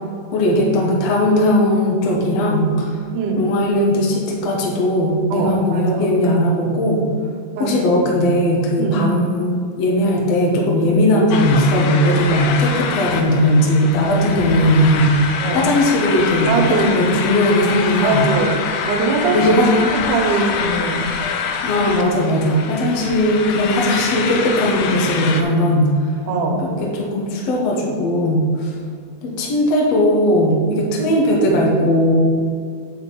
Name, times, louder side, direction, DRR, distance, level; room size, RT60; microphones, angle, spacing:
voice 1, 0.3-3.0 3.4-7.1 7.6-15.2 15.5-16.5 16.8-18.4 19.3-19.8 21.6-26.1 26.6-28.8 29.2-32.1, left 1 dB, 65° left, -2 dB, 2.0 m, -18 dB
voice 2, 5.3-6.1 7.5-7.8 8.8-9.1 15.4-15.6 16.5-17.0 18.0-18.5 18.9-19.5 19.9-21.1 26.3-26.6, right 3 dB, 75° right, 3 dB, 2.4 m, -21 dB
sound 1, 11.3-25.4, left 6 dB, 80° left, 2.1 m, -25 dB
7.8 x 6.0 x 5.2 m, 2.2 s
omnidirectional pair, 3.8 m